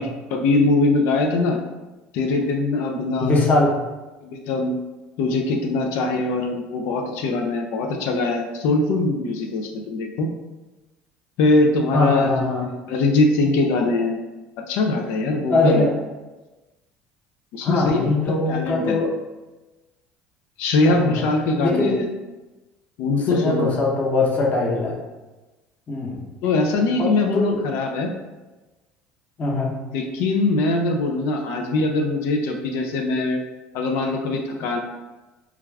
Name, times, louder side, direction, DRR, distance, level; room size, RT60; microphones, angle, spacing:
voice 1, 0.0-1.6 2.1-3.3 4.2-4.7 5.2-10.3 11.4-12.3 12.9-14.2 14.7-15.8 17.5-19.0 20.6-22.1 23.0-23.7 26.4-28.1 29.9-33.4 33.7-34.8, left 2 dB, 70° left, 2 dB, 0.3 m, -22 dB
voice 2, 3.2-3.7 11.9-12.7 15.5-16.0 17.6-19.1 20.8-21.2 21.6-22.0 23.2-25.0 25.9-26.2 27.0-27.6 29.4-29.7, left 2 dB, 40° left, -3 dB, 0.7 m, -21 dB
2.3 x 2.2 x 3.2 m, 1.1 s
supercardioid pair, 90°, 4 cm